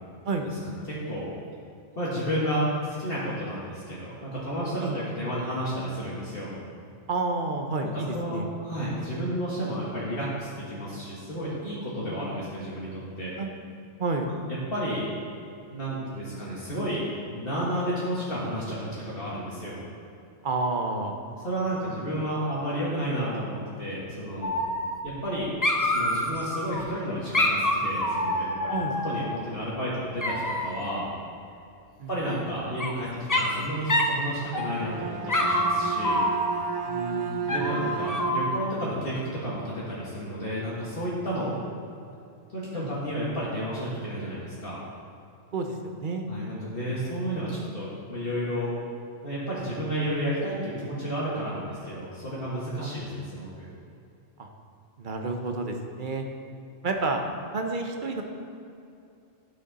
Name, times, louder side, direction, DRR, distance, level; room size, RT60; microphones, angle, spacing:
voice 1, 0.9-1.3 2.0-6.5 7.8-13.3 14.7-15.1 15.7-17.0 17.3-19.8 21.4-24.6 25.0-25.5 25.8-28.8 29.0-31.1 32.1-36.2 37.4-41.6 42.5-44.8 46.3-48.7 49.2-53.7, equal, 50° left, -8 dB, 1.7 m, -31 dB
voice 2, 7.1-8.5 11.9-12.3 13.4-13.5 14.0-14.3 20.4-21.2 28.7-29.0 32.0-32.1 36.9-37.7 42.7-42.9 45.5-46.3 52.8-53.2 54.4-54.5 55.0-56.2 56.8-57.2 57.5-58.2, right 3 dB, 45° right, 3 dB, 0.9 m, -30 dB
Dog, 24.4-25.3 25.6-26.8 27.3-29.4 30.2-30.9 32.3-32.9 33.3-33.6 33.9-34.2 34.5-34.9 35.3-36.8 37.5-38.7, left 1 dB, 20° left, 0.5 m, -27 dB
Bowed string instrument, 34.5-38.8, right 6 dB, 70° right, 0.3 m, -33 dB
12.0 x 6.3 x 4.1 m, 2.6 s
omnidirectional pair, 1.3 m